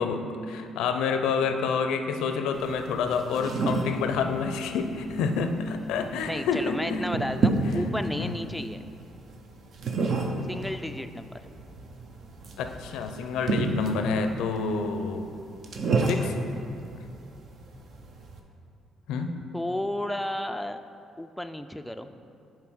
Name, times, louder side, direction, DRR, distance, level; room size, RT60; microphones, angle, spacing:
voice 1, 0.0-7.1 8.1-8.3 12.6-15.3 16.1-16.4 19.1-19.5, left 5 dB, 85° left, 7 dB, 0.4 m, -28 dB
Brick pick up and put down - laminate floor, 2.5-18.4, right 3 dB, 60° right, 0.7 m, -31 dB
voice 2, 6.3-8.8 10.5-11.4 19.5-20.8 21.2-22.2, left 1 dB, 5° left, 7 dB, 0.3 m, -32 dB
5.7 x 4.5 x 6.2 m, 2.6 s
supercardioid pair, 70°, 0 cm